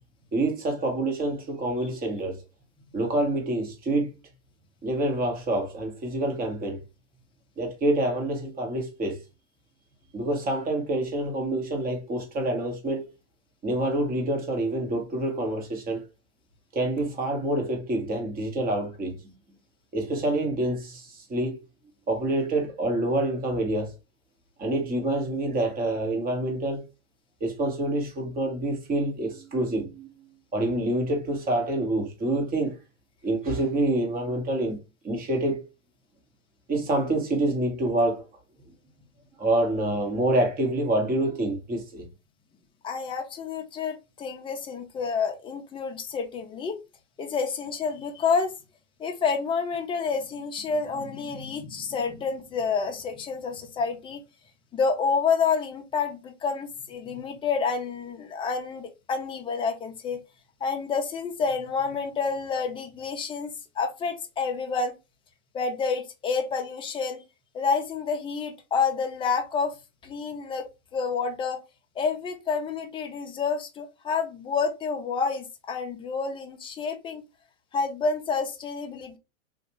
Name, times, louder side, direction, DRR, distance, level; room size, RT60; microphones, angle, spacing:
voice 1, 0.3-2.4 2.9-4.1 4.8-6.8 7.6-9.2 10.1-13.1 13.6-16.1 16.7-19.3 19.9-21.6 22.1-23.9 24.6-26.9 27.4-30.1 30.5-32.8 33.2-34.8 35.0-35.7 36.7-38.3 39.4-42.0, right 1 dB, 20° right, 1.2 m, -27 dB
voice 2, 42.8-46.8 47.2-48.5 49.0-54.2 54.7-60.2 60.6-64.9 65.5-67.2 67.5-69.7 70.0-70.7 70.9-71.6 72.0-77.2 77.7-79.2, left 5 dB, 15° left, 0.5 m, -29 dB
3.3 x 2.5 x 2.9 m
hypercardioid pair, 120°, 40 cm